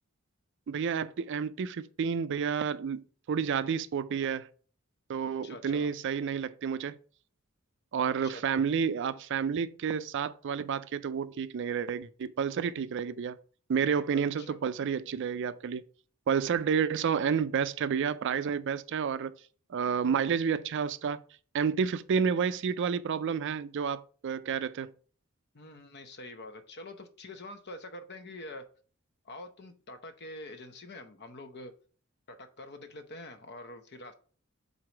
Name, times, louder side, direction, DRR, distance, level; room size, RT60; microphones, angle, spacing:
voice 1, 0.7-4.5 5.1-7.0 7.9-13.4 13.7-15.8 16.3-19.3 19.7-21.2 21.5-24.9, right 6 dB, 60° right, 0.4 m, -30 dB
voice 2, 5.4-5.9 8.2-8.4 14.4-14.6 25.5-28.6 29.2-31.7 32.3-34.1, left 1 dB, 50° left, 0.9 m, -45 dB
4.8 x 4.1 x 5.8 m
head